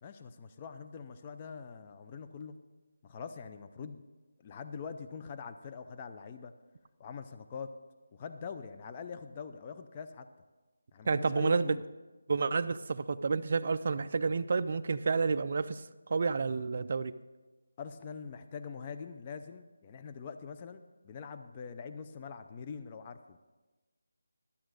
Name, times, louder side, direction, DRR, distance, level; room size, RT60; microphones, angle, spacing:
voice 1, 0.0-2.6 3.0-4.0 4.4-6.5 7.0-7.7 8.1-10.3 10.9-11.8 17.8-23.4, left 6 dB, 20° left, 8 dB, 0.5 m, -44 dB
voice 2, 11.1-11.8 12.3-15.8 16.1-17.1, right 4 dB, 40° right, 13 dB, 0.4 m, -30 dB
12.5 x 7.0 x 6.4 m, 1.2 s
figure-of-eight pair, 170°, 0 cm